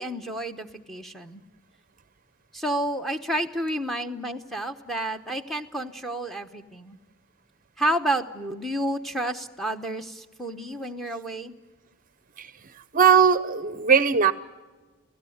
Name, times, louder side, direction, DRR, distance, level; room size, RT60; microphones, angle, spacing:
voice 1, 0.0-1.4 2.5-7.0 7.8-11.6, right 1 dB, ahead, 3 dB, 0.9 m, -30 dB
voice 2, 12.9-14.3, right 6 dB, 40° right, 15 dB, 0.6 m, -19 dB
29.0 x 16.5 x 7.9 m, 1.3 s
head